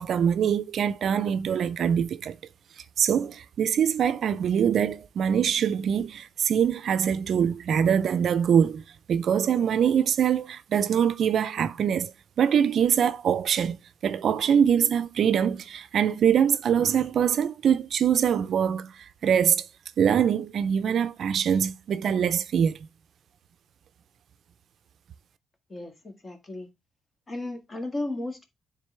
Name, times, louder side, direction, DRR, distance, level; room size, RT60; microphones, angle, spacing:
voice 1, 0.0-2.4 3.0-8.8 9.1-12.1 12.4-19.7 20.0-22.8, right 8 dB, 60° right, 0.4 m, -23 dB
voice 2, 25.7-26.7 27.3-28.4, left 2 dB, 30° left, 1.7 m, -34 dB
9.6 x 3.7 x 3.2 m
cardioid pair, 90°, 0 cm